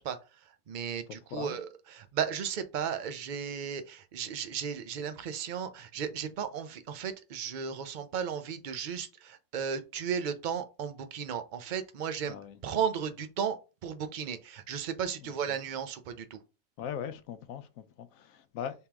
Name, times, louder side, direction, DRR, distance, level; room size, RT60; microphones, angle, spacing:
voice 1, 0.0-12.4 12.6-13.6 13.8-16.4, right 7 dB, 55° right, 0.5 m, -35 dB
voice 2, 12.2-12.6 15.2-15.3 16.8-18.9, left 8 dB, 75° left, 1.0 m, -40 dB
3.6 x 2.9 x 4.5 m
omnidirectional pair, 1.5 m